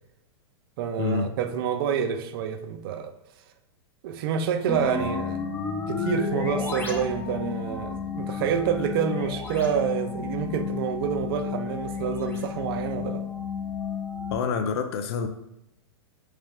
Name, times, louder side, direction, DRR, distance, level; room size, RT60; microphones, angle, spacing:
voice 1, 0.8-3.1 4.0-5.4 5.9-13.2, right 8 dB, 55° right, 0.5 m, -28 dB
sound 1, 4.7-14.4, left 5 dB, 15° left, 0.5 m, -32 dB
voice 2, 14.3-15.3, left 6 dB, 65° left, 0.5 m, -27 dB
3.3 x 3.2 x 3.4 m
hypercardioid pair, 135°, 14 cm